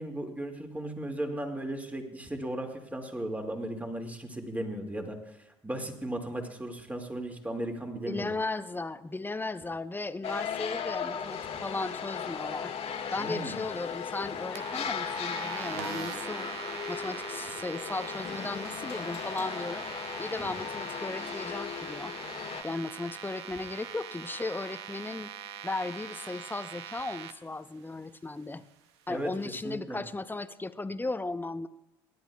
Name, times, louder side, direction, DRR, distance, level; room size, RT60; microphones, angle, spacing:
voice 1, 0.0-5.2 5.6-8.3 13.2-13.6 20.4-20.5 29.1-29.3 29.6-30.0, right 1 dB, 10° right, 3 dB, 2.1 m, -36 dB
voice 2, 8.1-12.7 13.1-16.5 16.9-19.9 20.2-22.1 22.6-25.3 25.6-28.6 29.1-31.7, left 3 dB, 15° left, 12 dB, 0.7 m, -36 dB
sound 1, 10.2-22.6, left 7 dB, 50° left, 1.6 m, -37 dB
sound 2, 14.5-27.3, right 8 dB, 80° right, 0.7 m, -42 dB
27.5 x 10.5 x 2.3 m, 0.91 s
hypercardioid pair, 55°, 14 cm